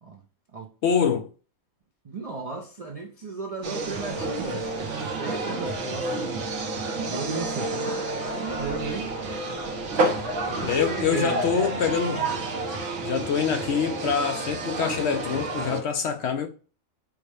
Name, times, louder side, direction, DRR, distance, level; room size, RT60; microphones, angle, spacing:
voice 1, 0.8-1.3 10.6-12.2 13.0-16.5, left 7 dB, 65° left, 0.8 m, -25 dB
voice 2, 2.0-6.3 7.0-9.1 10.4-11.5, right 3 dB, 50° right, 0.4 m, -35 dB
sound 1, 3.6-15.8, right 2 dB, 65° right, 1.1 m, -29 dB
4.8 x 2.1 x 4.7 m
omnidirectional pair, 1.4 m